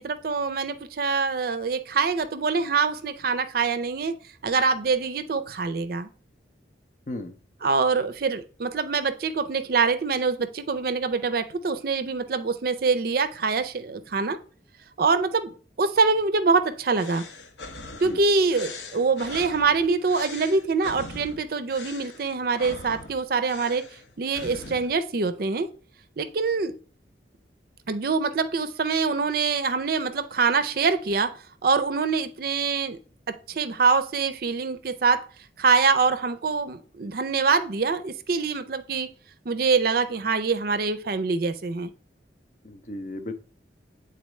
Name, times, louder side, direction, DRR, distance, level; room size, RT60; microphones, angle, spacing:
voice 1, 0.0-4.2 4.4-6.1 7.6-14.4 15.0-17.2 18.0-23.8 24.2-25.7 26.2-26.7 27.9-31.3 31.6-33.0 33.3-35.3 35.6-39.1 39.5-41.9, right 4 dB, 55° right, 11 dB, 0.5 m, -24 dB
sound 1, 17.0-24.9, left 3 dB, 75° left, 0.8 m, -41 dB
voice 2, 42.6-43.3, left 1 dB, 45° left, 9 dB, 0.6 m, -35 dB
8.1 x 3.9 x 3.1 m, 0.40 s
head